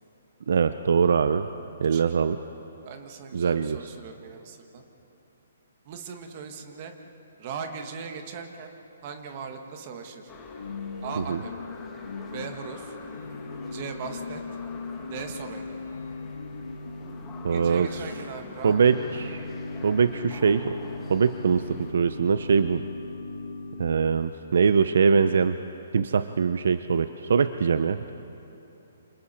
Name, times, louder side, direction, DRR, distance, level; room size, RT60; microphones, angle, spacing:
voice 1, 0.5-1.5 1.8-2.4 3.3-3.8 11.3-11.4 17.4-17.9 18.6-19.5 19.8-20.8 21.1-22.8 23.8-25.6 25.9-28.1, right 6 dB, 60° right, 11 dB, 0.6 m, -22 dB
voice 2, 2.8-4.8 5.8-6.9 7.4-8.7 9.0-10.3 11.0-11.5 12.3-12.9 13.6-14.4 15.1-15.6 17.5-18.8, right 6 dB, 25° right, 5 dB, 1.5 m, -39 dB
Organ / Church bell, 10.3-24.5, left 3 dB, 75° left, 1.5 m, -38 dB
sound 1, 10.3-21.9, left 4 dB, 10° left, 1.3 m, -47 dB
28.5 x 27.5 x 4.4 m, 3.0 s
hypercardioid pair, 175°, 0 cm